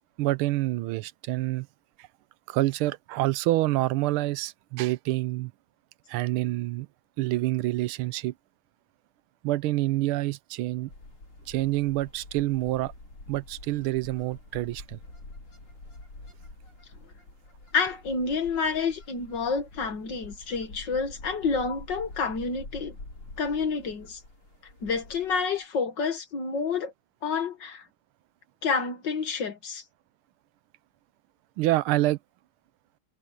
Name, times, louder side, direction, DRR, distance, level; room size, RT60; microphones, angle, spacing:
voice 1, 0.2-1.7 2.5-5.5 6.1-6.9 7.2-8.3 9.4-10.9 11.5-12.9 13.3-15.0 31.6-32.2, right 17 dB, 85° right, 1.5 m, -27 dB
sound 1, 10.9-25.6, left 2 dB, 90° left, 6.3 m, -47 dB
voice 2, 17.7-22.9 23.4-24.2 24.8-26.9 27.2-27.8 28.6-29.8, left 5 dB, 55° left, 2.4 m, -29 dB
omnidirectional pair, 2.3 m